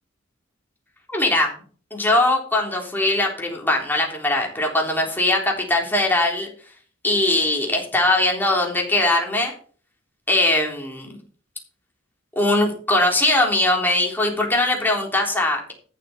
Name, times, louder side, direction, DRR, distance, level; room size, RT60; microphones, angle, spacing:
voice 1, 1.1-1.5 1.9-6.5 7.0-9.5 10.3-11.2 12.4-15.7, left 2 dB, 10° left, 0 dB, 3.6 m, -21 dB
14.5 x 7.7 x 4.3 m, 0.42 s
head